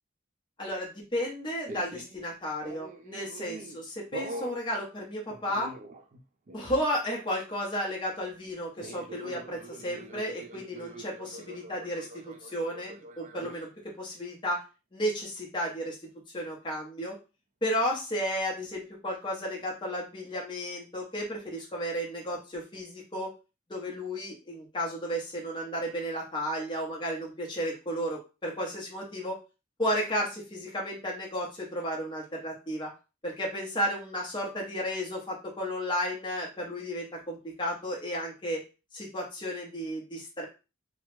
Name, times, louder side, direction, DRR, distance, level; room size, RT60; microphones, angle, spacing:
voice 1, 0.6-5.7 6.5-13.7 14.0-14.6 14.9-16.0 16.3-17.1 17.6-23.3 23.7-29.4 29.8-32.9 33.2-38.6 38.9-40.5, equal, 25° left, -3 dB, 0.8 m, -33 dB
sound 1, 1.7-2.2 2.6-3.8 4.1-4.6 5.3-6.2 6.5-6.7 8.8-13.6, right 2 dB, 35° right, 0.4 m, -44 dB
3.0 x 2.0 x 3.1 m, 0.31 s
head